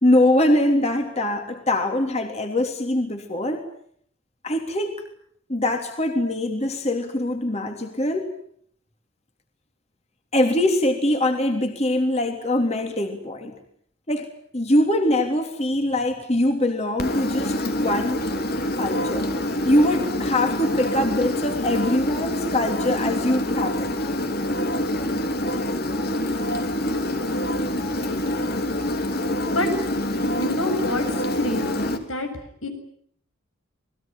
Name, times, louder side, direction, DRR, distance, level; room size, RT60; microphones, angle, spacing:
voice 1, 0.0-3.6 4.4-5.0 5.5-8.3 10.3-13.5 14.1-14.3 14.5-18.2 18.7-19.3 19.6-24.0, left 1 dB, 30° left, 4 dB, 3.2 m, -23 dB
Engine, 17.0-32.0, left 1 dB, 50° left, 3.2 m, -26 dB
voice 2, 30.2-31.0 31.4-32.3 32.6-32.7, left 1 dB, 85° left, 6 dB, 7.5 m, -27 dB
28.5 x 20.5 x 9.0 m, 0.66 s
head